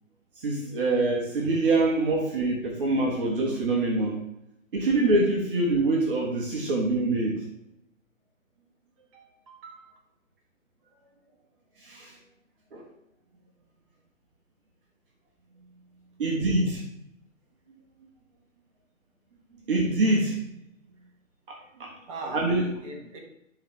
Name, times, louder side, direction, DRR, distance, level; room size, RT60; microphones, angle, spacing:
voice 1, 0.4-4.2 4.7-7.4 11.8-12.1 12.7-12.8 16.2-16.8 19.7-20.4 21.5-21.9 22.3-22.7, right 2 dB, 40° right, -1 dB, 1.4 m, -25 dB
voice 2, 9.1-9.9 22.1-22.5 22.8-23.2, right 2 dB, 25° right, 2 dB, 1.1 m, -40 dB
11.5 x 4.0 x 3.2 m, 0.84 s
figure-of-eight pair, 135°, 41 cm